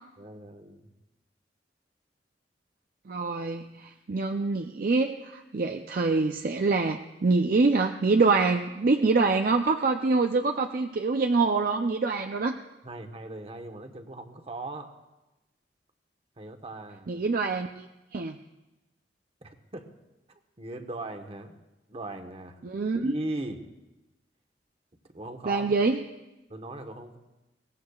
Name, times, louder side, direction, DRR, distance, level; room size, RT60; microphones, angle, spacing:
voice 1, 0.2-0.9 12.8-14.9 16.4-17.1 19.4-19.9 20.6-21.5 21.9-22.6 22.9-23.6 25.1-25.7 26.5-27.2, right 2 dB, 35° right, 6 dB, 1.1 m, -38 dB
voice 2, 3.1-12.6 17.1-17.9 18.1-18.4 22.6-23.1 25.5-26.0, right 3 dB, 55° right, 5 dB, 0.5 m, -25 dB
22.0 x 18.0 x 2.4 m, 1.0 s
head